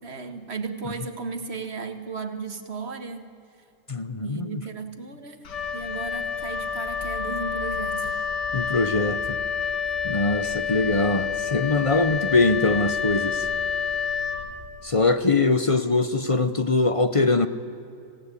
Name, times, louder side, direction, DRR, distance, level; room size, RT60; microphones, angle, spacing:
voice 1, 0.0-3.3 4.2-8.3 9.9-10.0, right 4 dB, 40° right, 7 dB, 1.8 m, -35 dB
voice 2, 3.9-4.5 8.5-9.4 10.0-13.5 14.8-17.5, left 3 dB, 35° left, 11 dB, 0.5 m, -22 dB
Wind instrument woodwind instrument, 5.4-14.9, left 6 dB, 75° left, 2.4 m, -28 dB
26.0 x 17.5 x 8.5 m, 2.7 s
omnidirectional pair, 1.8 m